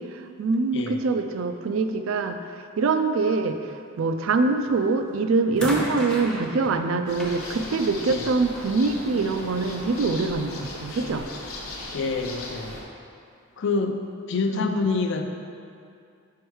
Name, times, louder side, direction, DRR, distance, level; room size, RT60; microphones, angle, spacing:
voice 1, 0.0-11.3 14.5-14.7, right 3 dB, 75° right, 7 dB, 0.4 m, -24 dB
sound 1, 4.6-5.0 5.6-8.8 9.9-10.0, left 1 dB, 5° left, 0.6 m, -35 dB
sound 2, 7.1-12.8, left 2 dB, 90° left, 1.0 m, -38 dB
voice 2, 11.9-12.8 13.6-15.2, left 4 dB, 60° left, 5 dB, 0.4 m, -27 dB
5.3 x 4.7 x 4.8 m, 2.4 s
head